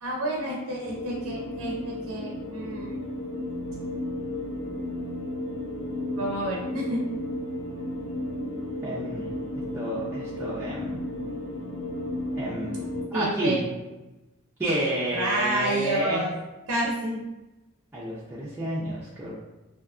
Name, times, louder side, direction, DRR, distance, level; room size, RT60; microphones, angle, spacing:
voice 1, 0.0-3.0 6.2-7.0 13.1-13.6 15.1-16.3 16.7-17.2, right 1 dB, 90° right, -2 dB, 0.4 m, -29 dB
sound 1, 0.8-13.0, left 1 dB, 55° left, 0.5 m, -33 dB
voice 2, 8.8-11.0 12.4-12.8 13.1-13.7 14.6-16.3 17.9-19.3, right 1 dB, 10° right, -8 dB, 0.3 m, -30 dB
2.6 x 2.2 x 2.4 m, 1.0 s
head